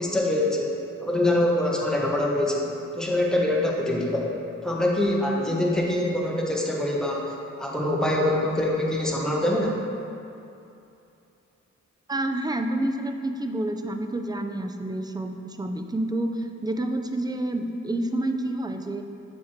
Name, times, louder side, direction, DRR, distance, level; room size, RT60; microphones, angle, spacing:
voice 1, 0.0-4.3 4.6-7.3 7.6-9.8, left 1 dB, ahead, -3 dB, 1.0 m, -24 dB
voice 2, 12.1-19.0, right 1 dB, 15° right, 6 dB, 0.4 m, -28 dB
7.1 x 4.4 x 3.1 m, 2.7 s
cardioid pair, 55°, 29 cm